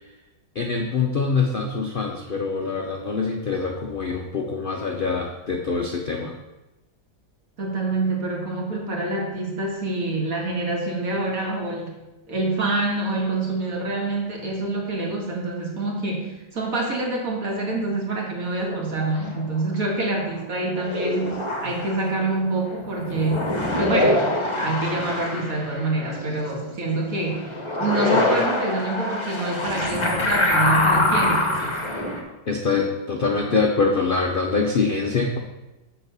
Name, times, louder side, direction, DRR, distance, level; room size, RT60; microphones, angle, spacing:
voice 1, 0.5-6.4 32.5-35.4, left 4 dB, 70° left, 1 dB, 0.5 m, -24 dB
voice 2, 7.6-11.9 12.3-24.2 24.5-27.5 27.8-31.8, right 2 dB, 50° right, -1 dB, 2.0 m, -26 dB
sound 1, 18.6-19.4 20.8-22.2 22.7-26.8 27.1-32.2, left 1 dB, 20° left, 0.9 m, -24 dB
6.9 x 4.8 x 6.7 m, 1.0 s
omnidirectional pair, 1.9 m